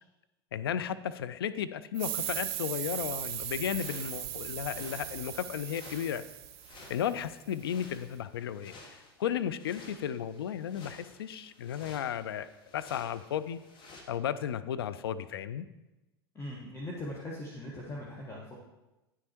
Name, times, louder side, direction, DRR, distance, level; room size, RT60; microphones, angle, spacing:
voice 1, 0.5-6.2 6.9-8.7 9.2-12.5 12.7-13.6 14.1-15.7, left 9 dB, 75° left, 13 dB, 0.4 m, -34 dB
sound 1, 1.9-7.3, right 12 dB, 50° right, 0.7 m, -38 dB
sound 2, 3.3-14.0, left 3 dB, 35° left, 1.6 m, -54 dB
voice 2, 16.3-18.5, left 1 dB, 20° left, -3 dB, 1.4 m, -40 dB
9.4 x 6.4 x 4.4 m, 1.0 s
hypercardioid pair, 85°, 13 cm